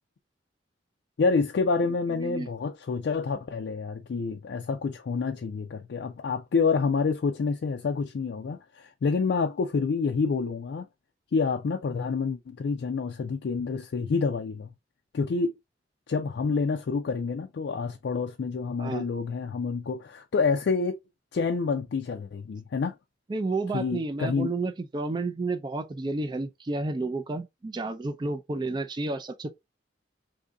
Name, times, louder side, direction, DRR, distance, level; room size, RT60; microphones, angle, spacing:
voice 1, 1.2-10.9 11.3-14.7 15.1-15.5 16.1-21.0 21.3-22.9 23.7-24.5, left 4 dB, 65° left, 0.4 m, -28 dB
voice 2, 2.2-2.5 18.8-19.0 23.3-29.5, right 3 dB, 25° right, 0.3 m, -31 dB
2.7 x 2.6 x 3.4 m
head